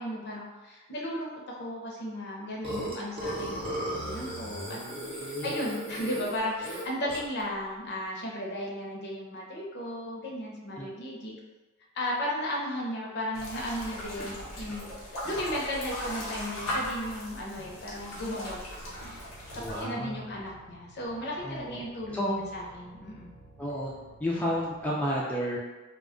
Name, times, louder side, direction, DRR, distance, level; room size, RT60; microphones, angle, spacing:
voice 1, 0.0-11.4 11.9-18.6 18.9-19.2 19.5-22.2 22.5-23.3, left 1 dB, 55° left, -2 dB, 0.6 m, -35 dB
Burping eructation, 2.6-7.4, right 1 dB, 25° right, 0.7 m, -36 dB
sound 1, 13.3-19.8, left 1 dB, 90° left, 0.8 m, -38 dB
sound 2, 18.8-24.9, right 2 dB, 80° right, 0.4 m, -54 dB
voice 2, 19.5-20.3 21.4-21.9 22.1-22.4 23.6-23.9 24.2-25.6, equal, 5° left, -6 dB, 0.3 m, -31 dB
2.2 x 2.0 x 3.6 m, 1.2 s
head